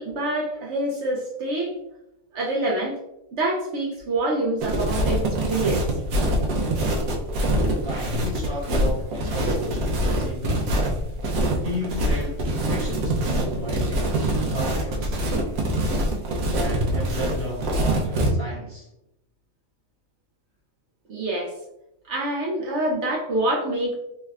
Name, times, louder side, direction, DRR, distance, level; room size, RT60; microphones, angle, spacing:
voice 1, 0.0-1.8 2.3-3.0 3.3-5.8 21.1-21.5 22.1-23.9, right 1 dB, 65° right, -2 dB, 0.8 m, -26 dB
sound 1, 4.6-18.3, right 1 dB, 85° right, 1.1 m, -24 dB
voice 2, 7.8-10.7 11.6-15.2 16.5-18.9, left 2 dB, 10° left, -7 dB, 0.7 m, -33 dB
3.3 x 3.2 x 2.3 m, 0.86 s
omnidirectional pair, 1.4 m